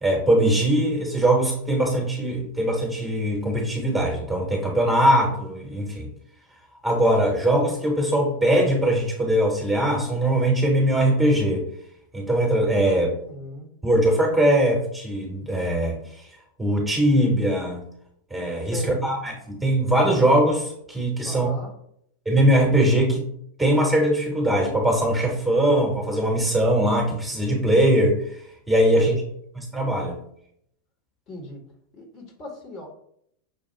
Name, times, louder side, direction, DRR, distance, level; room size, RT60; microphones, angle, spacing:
voice 1, 0.0-6.1 6.8-11.6 12.1-13.1 13.8-16.0 16.6-17.8 18.3-21.5 22.2-23.3 23.6-28.2 28.7-29.1 29.6-30.2, right 1 dB, 5° right, -1 dB, 1.2 m, -21 dB
voice 2, 13.2-13.7 18.7-19.0 21.2-21.7 29.0-29.2 31.3-31.6 31.9-32.9, equal, 35° left, 0 dB, 1.3 m, -36 dB
5.9 x 2.3 x 3.2 m, 0.70 s
figure-of-eight pair, 90°, 0 cm